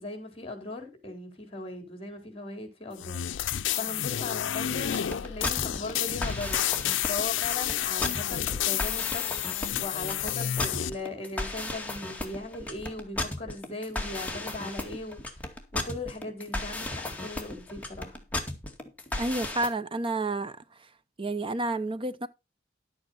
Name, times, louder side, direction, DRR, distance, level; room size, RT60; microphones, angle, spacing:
voice 1, 0.0-15.2 15.7-18.2, left 2 dB, 30° left, 4.2 m, -38 dB
sound 1, 3.0-10.9, left 11 dB, 75° left, 0.5 m, -30 dB
sound 2, 4.8-19.7, left 2 dB, 10° left, 2.1 m, -35 dB
voice 2, 19.2-20.6 21.2-22.3, right 2 dB, 30° right, 0.8 m, -30 dB
12.0 x 8.7 x 4.3 m
head